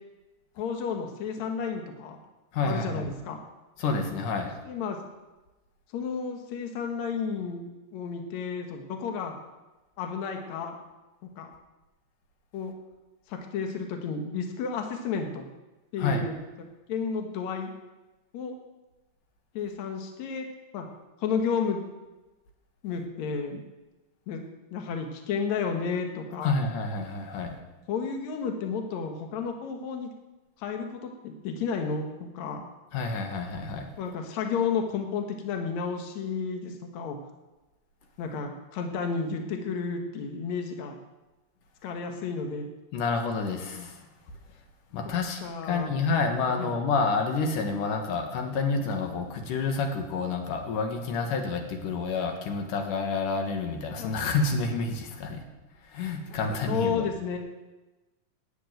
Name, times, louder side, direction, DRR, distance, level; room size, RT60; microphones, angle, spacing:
voice 1, 0.6-2.2 2.6-3.4 4.7-5.0 5.9-9.3 10.0-10.7 11.4-11.5 12.5-12.7 13.3-15.4 15.9-16.3 16.9-17.7 18.3-18.6 19.5-20.4 20.7-20.9 21.2-21.8 22.8-23.6 24.3-24.4 24.7-26.5 27.9-30.1 30.6-32.0 32.3-32.6 34.0-37.2 38.2-41.0 41.8-42.7 45.1-45.2 45.4-45.9 46.6-46.7 54.0-54.1 56.7-57.4, left 5 dB, 65° left, 4 dB, 2.5 m, -32 dB
voice 2, 2.5-3.1 3.8-4.5 16.0-16.3 26.4-27.5 32.9-33.9 42.9-44.0 44.9-45.4 45.7-55.4 55.9-57.1, left 4 dB, 90° left, 4 dB, 3.1 m, -29 dB
10.0 x 8.2 x 9.0 m, 1.1 s
omnidirectional pair, 3.6 m